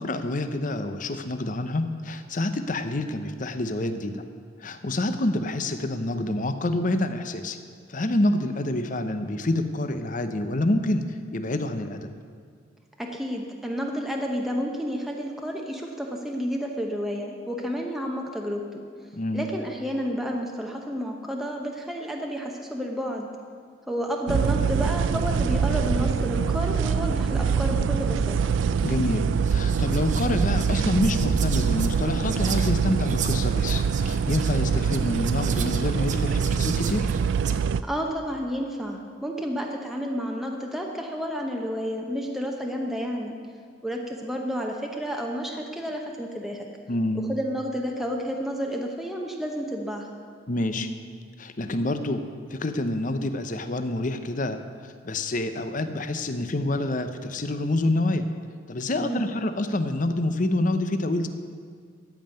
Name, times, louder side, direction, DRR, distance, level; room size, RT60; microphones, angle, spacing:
voice 1, 0.0-4.2 4.6-7.6 7.9-12.1 19.2-19.4 28.8-37.1 46.9-47.2 50.5-50.9 51.4-52.2 52.5-54.6 55.0-58.3 58.7-61.3, left 1 dB, 45° left, 9 dB, 0.7 m, -27 dB
voice 2, 13.0-18.8 19.3-23.3 23.9-28.4 37.8-43.4 43.8-46.7 47.3-50.1 58.9-59.3, equal, ahead, 0 dB, 0.9 m, -30 dB
sound 1, 24.3-37.8, right 6 dB, 85° right, 0.4 m, -24 dB
Whispering, 28.9-29.0 29.4-37.5, right 8 dB, 40° right, 0.7 m, -38 dB
14.0 x 5.6 x 9.1 m, 2.1 s
head